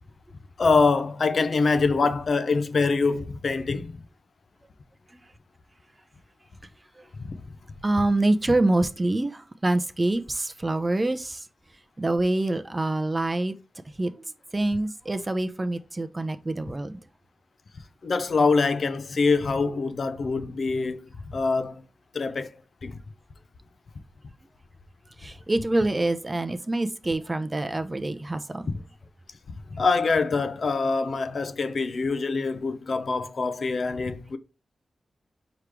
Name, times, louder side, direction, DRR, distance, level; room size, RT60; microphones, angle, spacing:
voice 1, 0.6-4.0 7.2-7.3 18.0-21.8 22.1-23.0 29.7-34.4, left 4 dB, 65° left, 0.5 m, -24 dB
voice 2, 7.8-11.4 12.0-13.5 14.0-14.1 14.5-17.0 25.2-28.7, right 2 dB, 30° right, 0.6 m, -26 dB
4.7 x 3.0 x 3.3 m
cardioid pair, 45°, 0 cm